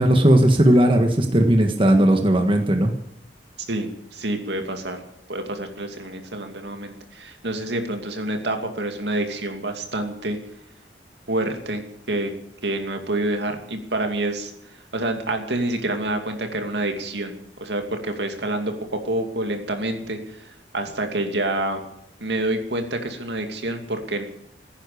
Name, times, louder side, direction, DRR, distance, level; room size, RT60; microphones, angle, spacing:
voice 1, 0.0-2.9, right 1 dB, 30° right, 4 dB, 1.6 m, -17 dB
voice 2, 3.7-5.0 5.3-10.4 11.3-11.8 12.1-12.3 12.6-18.7 19.0-21.8 22.2-24.2, right 1 dB, 70° right, 5 dB, 2.6 m, -27 dB
16.5 x 10.0 x 8.5 m, 0.75 s
head